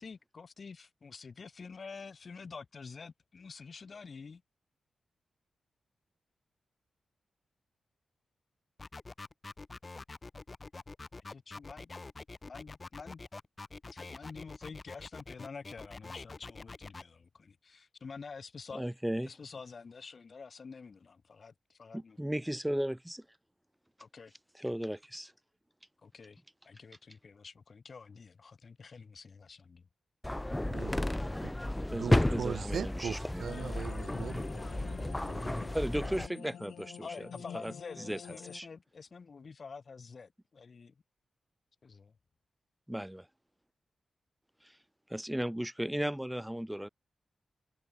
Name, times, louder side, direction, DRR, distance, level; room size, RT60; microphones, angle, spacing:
voice 1, 0.0-4.4 11.3-11.9 12.4-13.2 13.9-18.8 19.2-22.2 24.0-24.3 26.0-29.8 37.0-41.0 41.8-42.2, left 5 dB, 50° left, 2.7 m, -48 dB
sound 1, 8.8-17.0, left 3 dB, 35° left, 3.7 m, -46 dB
voice 2, 18.7-19.3 21.9-23.2 24.6-25.3 31.9-33.5 35.7-37.1 37.6-37.7 38.1-38.2 38.5-38.7 42.9-43.3 44.6-44.8 45.1-46.9, equal, 5° right, 1.7 m, -35 dB
sound 2, 30.2-36.3, left 1 dB, 10° left, 0.9 m, -33 dB
voice 3, 30.7-31.0 31.4-31.5 31.9-34.4, right 7 dB, 75° right, 0.4 m, -39 dB
sound 3, 33.4-38.6, left 9 dB, 90° left, 2.0 m, -48 dB
cardioid pair, 70°, 0 cm